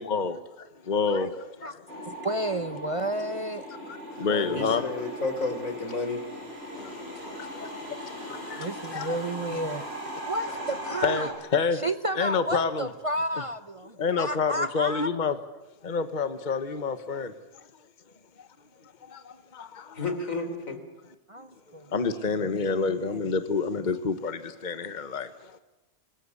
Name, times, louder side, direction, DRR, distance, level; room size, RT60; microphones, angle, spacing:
voice 1, 0.0-2.1 4.2-4.8 6.7-9.2 11.0-11.8 12.1-12.9 14.0-15.3 15.8-17.6 19.0-20.0 21.9-25.6, left 5 dB, 35° left, 1.4 m, -29 dB
sound 1, 1.9-11.3, right 1 dB, 50° right, 7.6 m, -38 dB
voice 2, 2.1-3.7 4.1-4.3 8.6-9.9 10.3-11.3 11.7-15.1 21.3-21.4 21.7-22.4 22.6-23.2, right 1 dB, 30° right, 0.8 m, -32 dB
voice 3, 4.2-6.3 19.9-20.8, left 3 dB, 80° left, 4.1 m, -31 dB
25.5 x 20.5 x 8.5 m
omnidirectional pair, 1.4 m